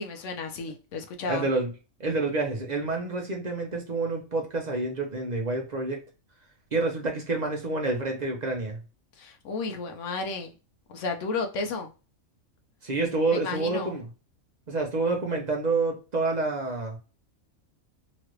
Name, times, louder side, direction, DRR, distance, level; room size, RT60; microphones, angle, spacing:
voice 1, 0.0-1.5 9.2-10.5 10.9-11.9 13.3-13.9, left 4 dB, 70° left, 0.9 m, -32 dB
voice 2, 1.3-1.7 2.0-6.0 6.7-8.8 12.8-14.1 14.7-17.0, right 3 dB, 50° right, 0.5 m, -28 dB
3.0 x 2.4 x 3.0 m
omnidirectional pair, 1.4 m